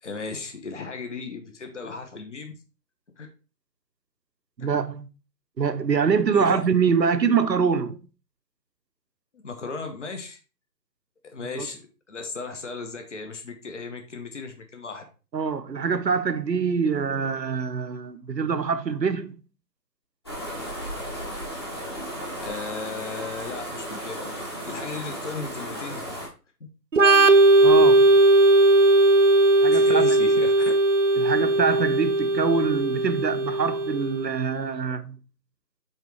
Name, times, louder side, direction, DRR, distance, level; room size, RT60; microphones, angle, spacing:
voice 1, 0.0-2.5 3.2-3.3 4.6-4.7 6.3-6.6 9.4-10.4 11.2-11.8 12.1-15.0 22.4-26.0 26.6-26.7 29.7-30.7, left 4 dB, 45° left, 1.1 m, -36 dB
voice 2, 4.6-5.1 5.6-8.0 11.6-11.7 15.3-19.4 27.6-28.1 29.6-30.2 31.1-35.2, right 6 dB, 85° right, 0.9 m, -24 dB
sound 1, 20.3-26.3, equal, 15° left, 1.1 m, -35 dB
Organ, 26.9-34.4, right 2 dB, 50° right, 0.6 m, -18 dB
8.8 x 3.6 x 3.1 m
figure-of-eight pair, 165°, 49 cm